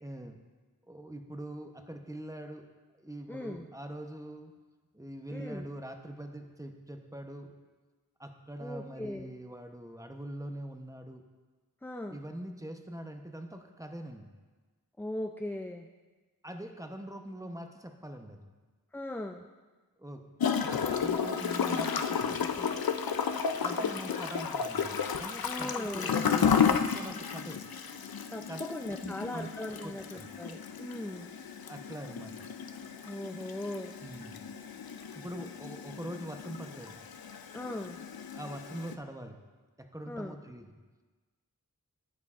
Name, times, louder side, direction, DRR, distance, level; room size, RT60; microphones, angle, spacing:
voice 1, 0.0-0.4 0.9-2.7 2.9-4.5 4.9-7.5 8.2-11.2 12.1-14.3 16.4-18.4 20.0-20.2 20.7-22.9 23.6-27.6 28.5-30.3 31.7-32.5 34.0-34.4 35.1-37.0 38.3-39.4 39.8-40.8, right 1 dB, 10° right, 5 dB, 0.7 m, -43 dB
voice 2, 3.3-3.7 5.3-5.7 8.6-9.3 11.8-12.2 15.0-15.9 18.9-19.4 25.4-26.1 28.3-30.0 30.4-31.3 33.1-33.9 37.5-38.0 40.1-40.3, left 1 dB, 5° left, 4 dB, 0.3 m, -38 dB
Gurgling / Toilet flush, 20.4-38.9, left 6 dB, 75° left, 0.5 m, -33 dB
11.0 x 9.4 x 2.4 m, 1.3 s
wide cardioid pair, 40°, 36 cm